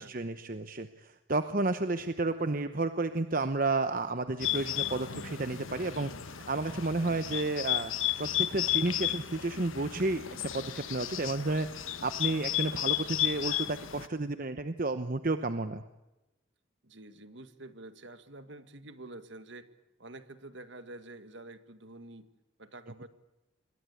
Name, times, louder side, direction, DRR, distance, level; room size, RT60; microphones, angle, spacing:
voice 1, 0.0-7.9 8.2-10.2 10.5-15.8, right 2 dB, 45° right, 10 dB, 0.9 m, -32 dB
Bird, 4.4-14.1, left 13 dB, 80° left, 1.2 m, -34 dB
voice 2, 16.8-19.7 20.0-22.3 22.6-23.1, right 2 dB, 65° right, 10 dB, 2.0 m, -48 dB
27.5 x 22.0 x 8.5 m, 0.97 s
head